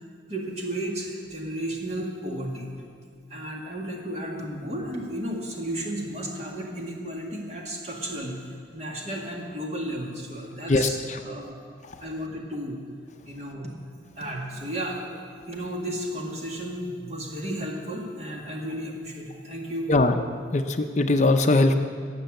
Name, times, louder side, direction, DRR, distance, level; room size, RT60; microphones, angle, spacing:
voice 1, 0.3-2.7 3.3-8.4 8.7-11.0 11.2-11.6 12.0-12.8 13.3-13.7 14.2-15.1 15.5-19.9, right 1 dB, 40° right, 0 dB, 2.0 m, -33 dB
voice 2, 10.7-11.2 11.9-12.0 19.9-20.2 20.5-21.7, left 2 dB, 40° left, 7 dB, 0.6 m, -21 dB
17.0 x 6.8 x 7.7 m, 2.3 s
head